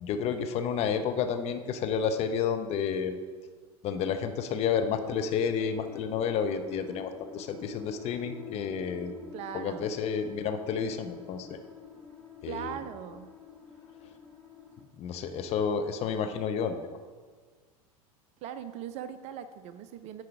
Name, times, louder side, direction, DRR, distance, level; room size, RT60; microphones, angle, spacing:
voice 1, 0.0-3.2 3.8-9.1 9.5-11.6 12.4-12.8 15.0-16.8, left 6 dB, 35° left, 8 dB, 0.7 m, -30 dB
sound 1, 4.7-14.8, left 8 dB, 10° left, 1.6 m, -46 dB
voice 2, 9.3-9.9 12.5-13.3 18.4-20.2, right 9 dB, 35° right, 12 dB, 0.4 m, -40 dB
9.3 x 4.8 x 4.7 m, 1.5 s
figure-of-eight pair, 85°, 19 cm